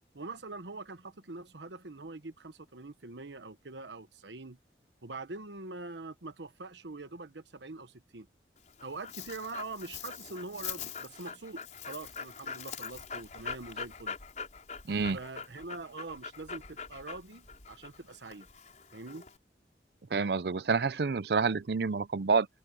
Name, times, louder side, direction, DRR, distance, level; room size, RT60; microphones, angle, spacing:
voice 1, 0.1-4.6 5.0-8.3 8.8-14.2 15.1-18.5 18.9-19.2, right 3 dB, 85° right, 1.2 m, -44 dB
Dog, 8.6-19.4, left 6 dB, 45° left, 5.3 m, -43 dB
voice 2, 20.1-22.5, right 4 dB, 65° right, 0.5 m, -28 dB
head